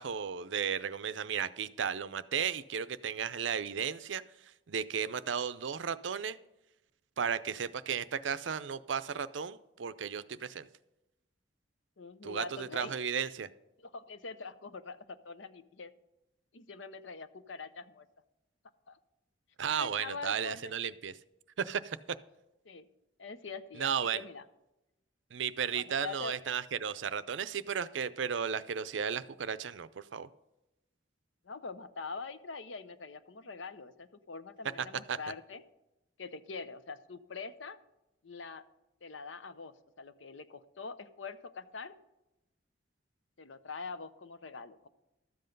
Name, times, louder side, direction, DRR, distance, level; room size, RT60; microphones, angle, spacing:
voice 1, 0.0-4.2 4.7-6.4 7.2-10.7 12.2-13.5 19.6-21.1 21.6-22.0 23.8-24.2 25.3-30.3 35.1-35.2, right 7 dB, 80° right, 14 dB, 0.5 m, -34 dB
voice 2, 12.0-13.0 13.8-15.9 16.5-18.1 18.9-19.0 19.7-20.7 22.6-22.9 23.2-24.4 25.7-26.4 31.4-35.6 36.2-37.8 38.2-38.6 39.0-42.0 43.4-44.9, left 4 dB, 85° left, 12 dB, 0.7 m, -44 dB
13.0 x 7.8 x 5.3 m, 0.95 s
head